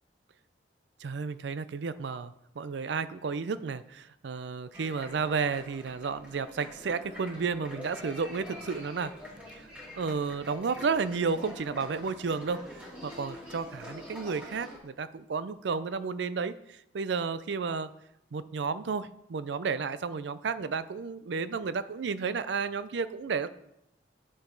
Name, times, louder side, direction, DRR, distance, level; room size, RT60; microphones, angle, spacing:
voice 1, 1.0-9.1 9.5-9.7 10.0-17.9 18.3-23.5, right 5 dB, 75° right, 14 dB, 0.4 m, -32 dB
sound 1, 4.7-14.8, left 1 dB, 10° right, 2.4 m, -46 dB
8.9 x 7.1 x 3.9 m, 0.84 s
head